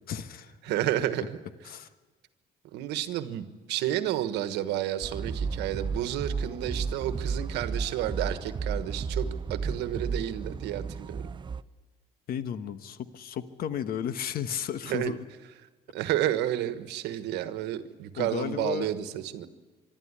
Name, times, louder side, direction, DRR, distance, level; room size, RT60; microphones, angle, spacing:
voice 1, 0.1-0.6 1.6-1.9 12.3-15.2 18.1-18.9, left 8 dB, 60° left, 11 dB, 1.2 m, -34 dB
voice 2, 0.6-1.4 2.7-11.3 14.9-15.1 15.9-19.5, right 12 dB, 85° right, 11 dB, 1.3 m, -31 dB
sound 1, 5.0-11.6, right 5 dB, 30° right, 0.5 m, -33 dB
24.5 x 12.5 x 9.8 m, 1.4 s
cardioid pair, 110°, 17 cm